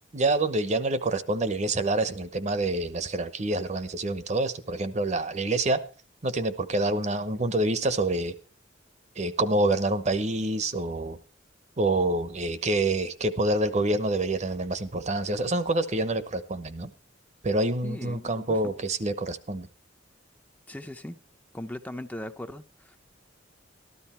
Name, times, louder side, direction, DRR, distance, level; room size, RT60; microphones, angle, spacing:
voice 1, 0.1-5.8 6.2-8.3 9.2-11.2 11.8-16.9 17.4-19.7, right 2 dB, 35° right, 0.9 m, -27 dB
voice 2, 17.8-18.6 20.7-21.2 21.5-23.0, left 1 dB, 10° left, 0.6 m, -39 dB
13.5 x 12.5 x 4.4 m
head